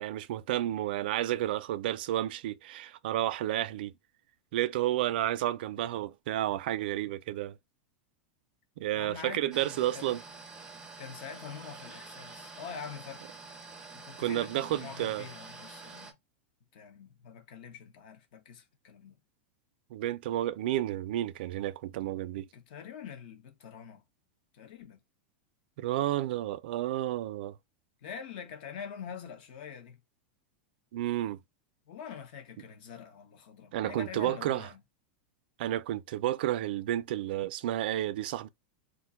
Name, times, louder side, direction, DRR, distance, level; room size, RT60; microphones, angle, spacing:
voice 1, 0.0-3.9 4.5-7.5 8.8-10.2 14.2-15.3 19.9-22.5 25.8-27.6 30.9-31.4 33.7-34.7 35.6-38.5, right 13 dB, 60° right, 0.4 m, -31 dB
voice 2, 8.9-10.1 11.0-13.3 13.9-16.2 16.7-19.2 22.5-24.0 24.5-25.0 28.0-30.0 31.9-34.8, left 7 dB, 55° left, 0.9 m, -45 dB
sound 1, 9.5-16.1, right 4 dB, 10° right, 0.5 m, -47 dB
2.5 x 2.2 x 3.8 m
supercardioid pair, 165°, 6 cm